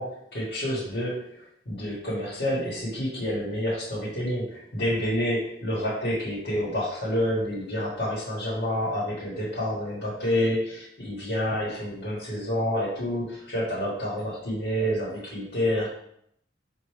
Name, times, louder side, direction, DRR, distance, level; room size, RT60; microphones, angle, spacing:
voice 1, 0.0-15.9, equal, 75° left, -8 dB, 1.3 m, -28 dB
4.5 x 2.5 x 3.2 m, 0.73 s
head